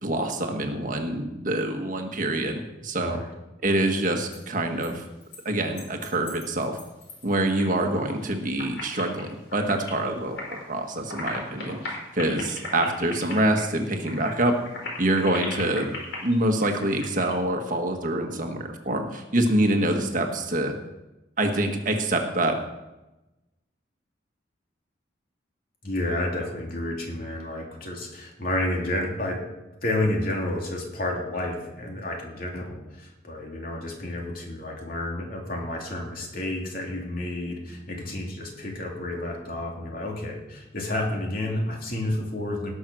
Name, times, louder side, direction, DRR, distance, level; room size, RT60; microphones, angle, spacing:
voice 1, 0.0-3.2 3.6-5.1 5.4-6.8 7.2-10.4 10.7-14.5 15.0-15.9 16.2-20.7 21.4-22.5, right 1 dB, 45° right, 4 dB, 1.5 m, -25 dB
voice 2, 3.0-3.3 25.8-29.4 29.8-42.7, left 1 dB, 50° left, 0 dB, 2.9 m, -30 dB
sound 1, 4.1-4.4 4.8-4.9 5.2-5.4 5.7-7.7 7.9-8.3 8.6-10.7 10.9-17.4, left 2 dB, 65° left, 4.4 m, -38 dB
18.5 x 6.3 x 6.3 m, 1.0 s
head